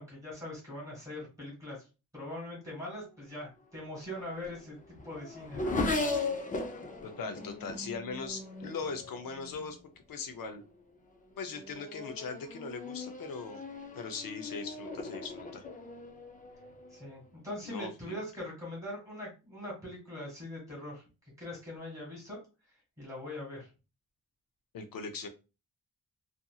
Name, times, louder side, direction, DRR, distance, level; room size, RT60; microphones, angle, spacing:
voice 1, 0.0-1.8 2.1-4.8 5.0-5.8 16.9-21.0 21.4-22.4 23.0-23.7, left 1 dB, 10° right, -3 dB, 1.6 m, -42 dB
Race car auto racing / Accelerating revving vroom, 3.9-9.8 10.6-10.9 11.4-17.3, left 3 dB, 25° left, 0.4 m, -38 dB
voice 2, 7.0-9.8 10.1-10.6 11.4-13.6 13.9-15.6 17.6-18.1 24.7-25.3, left 4 dB, 75° left, 7 dB, 0.6 m, -40 dB
2.7 x 2.5 x 2.3 m, 0.30 s
wide cardioid pair, 170°, 35 cm